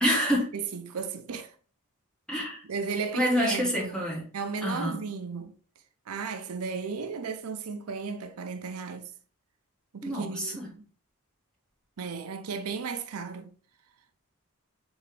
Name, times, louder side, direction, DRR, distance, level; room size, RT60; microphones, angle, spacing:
voice 1, 0.0-0.5 2.3-2.6 3.1-4.3 4.6-5.0 10.0-10.7, equal, 5° left, 1.2 m, -27 dB
voice 2, 0.5-1.5 2.7-4.0 4.3-5.5 6.1-9.1 9.9-10.8 12.0-13.5, right 5 dB, 85° right, 0.5 m, -35 dB
4.1 x 3.5 x 3.2 m
head